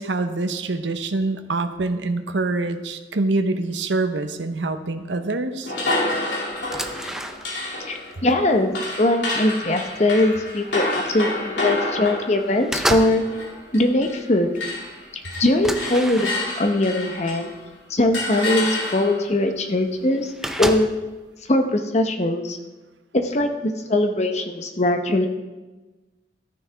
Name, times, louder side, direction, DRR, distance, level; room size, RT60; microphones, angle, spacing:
voice 1, 0.0-5.7, right 2 dB, 85° right, 9 dB, 0.8 m, -25 dB
sound 1, 5.6-14.3 14.5-17.6 18.1-19.3, left 2 dB, 80° left, 2.5 m, -29 dB
sound 2, 6.5-7.8 8.1-9.3 9.9-10.1 10.4-11.3 11.7-12.1 12.4-13.3 13.6-14.1 14.5-14.6 14.9-15.0 15.6-16.7 17.5-17.6 18.1-18.2 19.3-19.4 19.6-19.7 19.9-21.2, right 1 dB, 5° right, 0.5 m, -30 dB
voice 2, 8.2-13.2 13.7-14.5 15.4-17.5 17.9-20.3 20.6-20.9 21.5-22.6 23.1-25.3, left 1 dB, 35° left, 5 dB, 0.9 m, -21 dB
13.5 x 9.6 x 3.4 m, 1.2 s
head